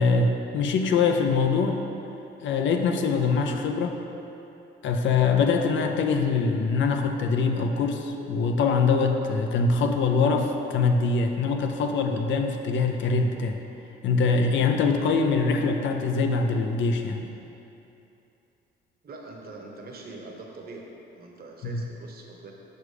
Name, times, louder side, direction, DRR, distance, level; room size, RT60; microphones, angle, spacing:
voice 1, 0.0-1.8 2.4-4.0 4.8-13.6 14.0-17.3 21.7-21.8, left 4 dB, 70° left, 4 dB, 0.5 m, -23 dB
voice 2, 19.0-20.9 21.1-22.5, right 3 dB, 50° right, 0 dB, 0.9 m, -43 dB
6.6 x 4.8 x 3.3 m, 2.8 s
cardioid pair, 90°, 20 cm